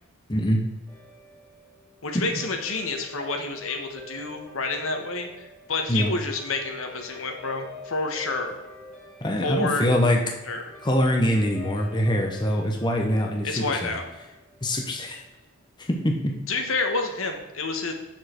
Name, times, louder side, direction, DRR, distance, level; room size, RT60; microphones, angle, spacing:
voice 1, 0.3-0.6 5.9-6.1 9.2-10.2 10.8-14.0 14.6-15.2 15.8-16.3, equal, 20° left, 2 dB, 0.8 m, -24 dB
Guitar, 0.9-15.4, left 3 dB, ahead, 2.8 m, -47 dB
voice 2, 2.0-8.5 9.4-9.9 10.5-10.7 13.4-14.0 16.5-17.9, left 3 dB, 70° left, 4 dB, 1.2 m, -29 dB
7.4 x 6.4 x 4.4 m, 1.0 s
head